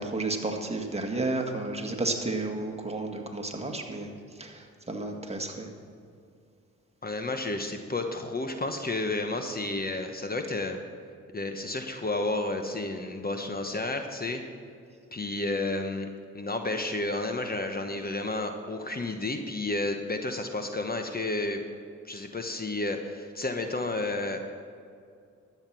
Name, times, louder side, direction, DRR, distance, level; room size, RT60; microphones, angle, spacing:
voice 1, 0.0-4.1 4.4-5.7, right 2 dB, 20° right, 2 dB, 1.8 m, -32 dB
voice 2, 7.0-10.8 11.3-14.4 15.1-16.1 16.3-21.6 22.0-24.5, left 2 dB, 30° left, 5 dB, 1.1 m, -31 dB
12.5 x 8.2 x 6.1 m, 2.3 s
supercardioid pair, 55°, 30 cm